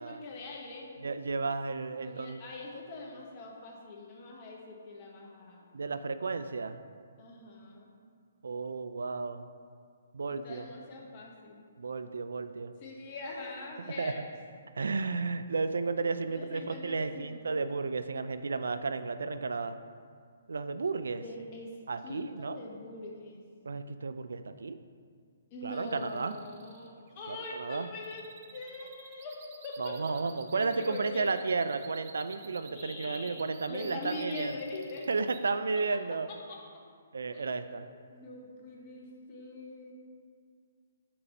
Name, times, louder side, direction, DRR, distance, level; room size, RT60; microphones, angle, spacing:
voice 1, 0.0-0.9 2.0-5.7 7.2-7.9 10.3-11.6 12.8-14.2 16.2-17.5 21.1-21.7 22.0-23.4 25.5-29.4 29.6-30.2 30.5-31.3 32.7-35.1 36.5-36.6 37.3-37.8 38.1-39.9, left 2 dB, 35° left, -2 dB, 1.3 m, -43 dB
voice 2, 1.0-2.4 5.7-6.8 8.4-9.5 10.1-10.7 11.8-12.7 14.0-14.1 14.8-19.8 20.5-21.2 21.9-22.6 23.6-24.8 25.6-26.3 27.3-27.9 29.8-34.5 35.1-36.3 37.1-37.9, right 4 dB, 70° right, 11 dB, 0.3 m, -33 dB
sound 1, 25.7-35.4, right 6 dB, 45° right, 0.7 m, -53 dB
5.9 x 4.6 x 5.3 m, 2.1 s
figure-of-eight pair, 135°, 0 cm